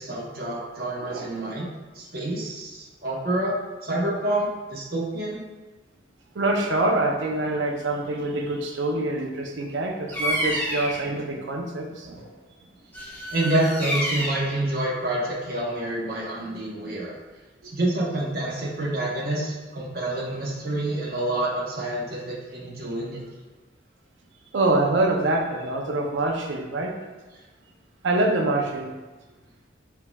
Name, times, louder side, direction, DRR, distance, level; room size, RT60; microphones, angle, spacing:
voice 1, 0.0-1.7 1.9-3.6 3.8-5.4 13.3-17.1 17.7-23.2, right 1 dB, 55° right, -4 dB, 1.1 m, -27 dB
voice 2, 1.0-1.5 6.3-12.3 17.6-17.7 24.5-27.0 28.0-28.9, right 2 dB, 80° right, 2 dB, 0.6 m, -25 dB
Bird vocalization bird call bird song, 10.1-11.1 12.9-14.5, equal, 10° left, 0.9 m, -28 dB
4.7 x 4.6 x 2.3 m, 1.2 s
head